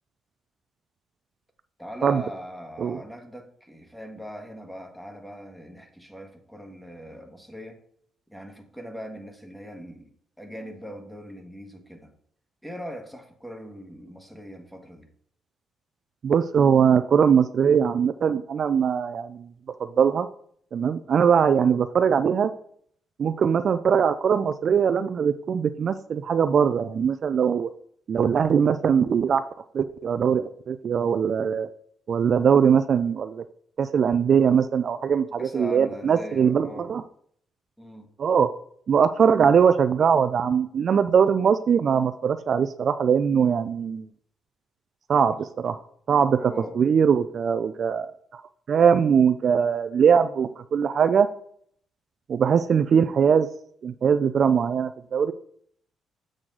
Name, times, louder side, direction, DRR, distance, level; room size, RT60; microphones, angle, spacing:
voice 1, 1.8-7.8 8.3-12.1 12.6-15.1 35.4-37.0 37.8-38.1 46.3-46.8, equal, 5° left, 4 dB, 1.5 m, -40 dB
voice 2, 16.2-19.5 20.0-20.3 20.7-22.5 23.2-27.7 28.1-29.4 29.7-31.7 32.1-33.4 33.8-37.0 38.2-38.5 38.9-44.1 45.1-45.8 46.1-48.4 48.7-51.3 52.3-53.5 53.8-55.3, right 7 dB, 55° right, 11 dB, 0.4 m, -21 dB
7.5 x 6.3 x 3.9 m, 0.63 s
cardioid pair, 90°, 0 cm